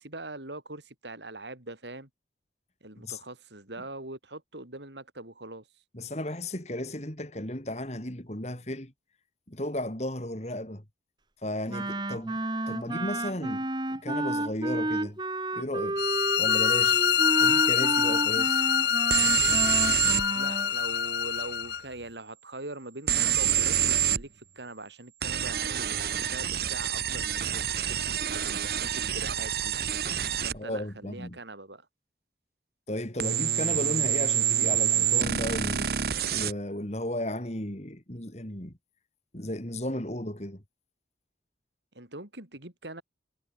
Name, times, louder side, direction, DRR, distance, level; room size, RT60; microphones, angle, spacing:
voice 1, 0.0-2.1 2.8-5.8 20.3-29.7 30.4-31.9 41.9-43.0, right 2 dB, 80° right, 6.0 m, -42 dB
voice 2, 5.9-8.9 9.5-10.8 11.4-12.4 12.7-15.2 15.5-16.0 16.4-17.1 17.4-18.6 30.5-31.4 32.9-35.9 36.3-38.7 39.3-40.6, left 1 dB, 40° left, 3.4 m, -34 dB
Wind instrument woodwind instrument, 11.7-20.7, right 1 dB, 25° right, 2.6 m, -31 dB
sound 1, 16.0-21.8, left 8 dB, 70° left, 1.9 m, -25 dB
sound 2, 19.1-20.3 23.1-24.2 25.2-30.6 33.2-36.5, right 10 dB, 60° right, 1.1 m, -27 dB
head